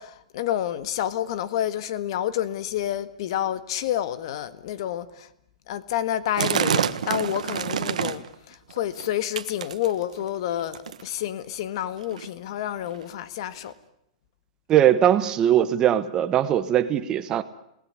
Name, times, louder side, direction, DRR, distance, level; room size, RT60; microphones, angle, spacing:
voice 1, 0.0-5.3 5.7-13.7, left 11 dB, 50° left, 1.6 m, -29 dB
sound 1, 6.4-8.3 8.7-9.1 9.4-10.2 10.7-11.1 11.8-11.9 12.1-12.3 12.9-13.0 13.7-13.8, right 8 dB, 85° right, 1.5 m, -27 dB
voice 2, 14.7-17.4, right 11 dB, 20° right, 1.3 m, -20 dB
29.0 x 19.0 x 9.7 m
hypercardioid pair, 165°, 4 cm